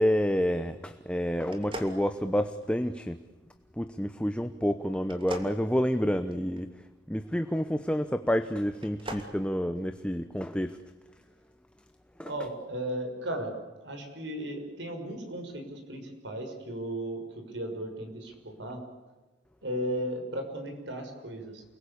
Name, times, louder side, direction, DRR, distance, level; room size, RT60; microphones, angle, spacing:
voice 1, 0.0-3.2 3.8-6.7 7.1-10.8 12.2-12.3, equal, 5° left, 9 dB, 0.8 m, -29 dB
sound 1, 1.5-2.8 5.0-6.6 8.7-9.3, right 1 dB, 30° right, 2.9 m, -41 dB
voice 2, 12.2-13.5 13.8-18.8 19.6-21.6, right 1 dB, 75° right, 5 dB, 6.1 m, -36 dB
29.0 x 21.5 x 8.5 m, 1.1 s
head